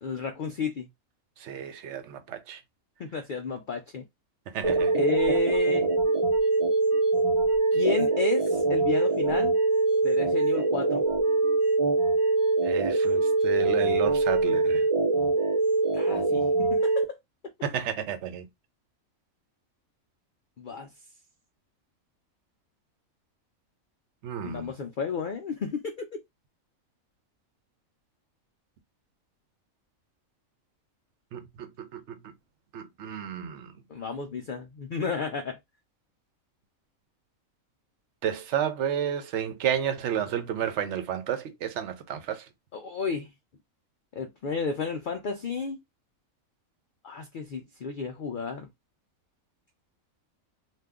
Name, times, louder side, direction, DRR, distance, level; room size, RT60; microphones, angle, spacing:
voice 1, 0.0-0.9 3.0-4.1 4.9-5.9 7.7-9.6 10.0-11.0 15.9-17.2 20.6-20.9 24.4-26.1 33.9-35.6 42.7-43.3 44.2-45.8 47.0-48.7, left 5 dB, 85° left, 0.4 m, -32 dB
voice 2, 1.4-2.6 4.5-4.9 12.6-14.9 17.6-18.5 24.2-24.7 31.3-32.3 32.7-33.7 38.2-42.5, right 8 dB, 65° right, 0.9 m, -31 dB
sound 1, 4.6-17.0, right 3 dB, 40° right, 0.4 m, -23 dB
2.7 x 2.3 x 3.5 m
omnidirectional pair, 1.4 m